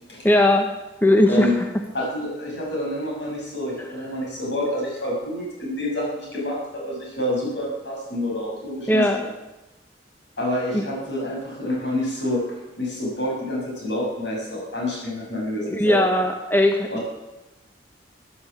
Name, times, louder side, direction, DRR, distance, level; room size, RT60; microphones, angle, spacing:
voice 1, 0.2-0.7 1.0-1.5 8.9-9.2 10.7-10.8 15.6-16.9, left 1 dB, 10° left, 4 dB, 0.9 m, -18 dB
voice 2, 1.3-1.6 1.9-9.3 10.4-12.4 12.8-16.0 16.9-17.0, left 1 dB, 70° left, -3 dB, 6.9 m, -28 dB
14.5 x 10.0 x 7.4 m, 1.0 s
head